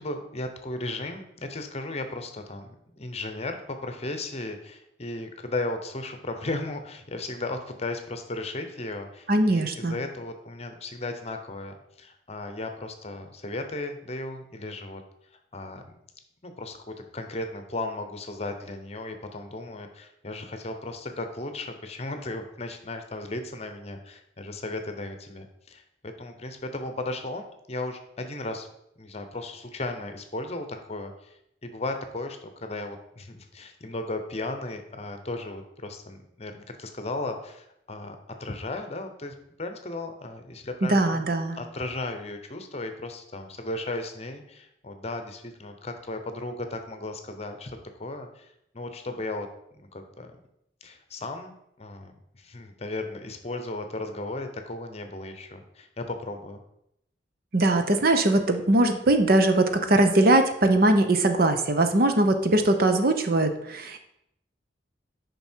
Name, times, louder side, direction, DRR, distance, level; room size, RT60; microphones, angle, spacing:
voice 1, 0.0-15.0 15.5-15.9 16.4-28.7 29.0-31.4 31.6-49.5 49.8-50.3 50.8-56.6, left 2 dB, 35° left, 7 dB, 0.9 m, -35 dB
voice 2, 9.3-10.0 40.8-41.6 57.5-64.0, right 2 dB, 50° right, 7 dB, 0.8 m, -21 dB
9.1 x 5.5 x 4.5 m, 0.79 s
head